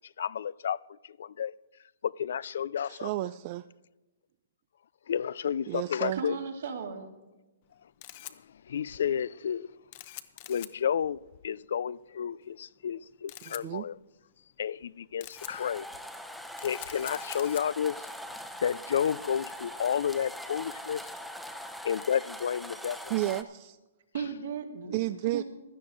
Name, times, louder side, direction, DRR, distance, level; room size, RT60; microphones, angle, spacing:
voice 1, 0.2-0.8 1.4-1.5 2.0-3.1 5.1-6.4 8.7-9.7 10.5-11.2 11.4-14.0 14.6-15.8 16.6-17.9 18.6-21.0 21.9-23.0, left 8 dB, 70° left, 0.3 m, -31 dB
voice 2, 2.9-3.7 5.7-6.2 13.5-13.8 23.1-23.8 24.9-25.4, right 16 dB, 40° right, 0.3 m, -32 dB
voice 3, 6.1-7.2 24.1-25.0 25.3-25.4, right 6 dB, 70° right, 2.2 m, -36 dB
Camera, 7.6-21.0, left 15 dB, 45° left, 0.8 m, -49 dB
sound 1, 15.4-23.4, equal, ahead, 0.8 m, -42 dB
16.5 x 11.5 x 3.9 m
hypercardioid pair, 140°, 0 cm